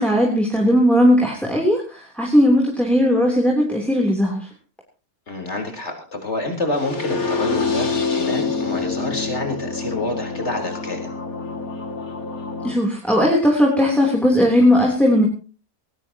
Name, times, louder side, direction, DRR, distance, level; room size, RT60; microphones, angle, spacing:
voice 1, 0.0-4.5 12.6-15.2, equal, ahead, -1 dB, 3.4 m, -17 dB
voice 2, 5.3-11.1, left 2 dB, 50° left, 4 dB, 4.4 m, -27 dB
sound 1, 6.8-12.7, left 4 dB, 80° left, 2.9 m, -26 dB
20.0 x 18.5 x 3.0 m, 0.34 s
omnidirectional pair, 1.5 m